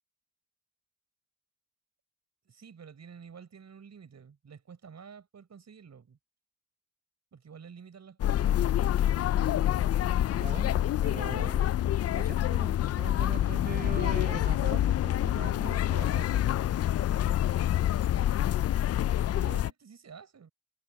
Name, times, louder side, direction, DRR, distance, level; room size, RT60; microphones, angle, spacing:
voice 1, 2.4-6.2 7.3-8.6 19.3-20.5, right 6 dB, 50° right, 6.2 m, -50 dB
sound 1, 8.2-19.7, left 12 dB, 45° left, 0.4 m, -27 dB
voice 2, 10.4-10.8 11.0-16.6, right 5 dB, 25° right, 0.9 m, -42 dB
cardioid pair, 75°, 35 cm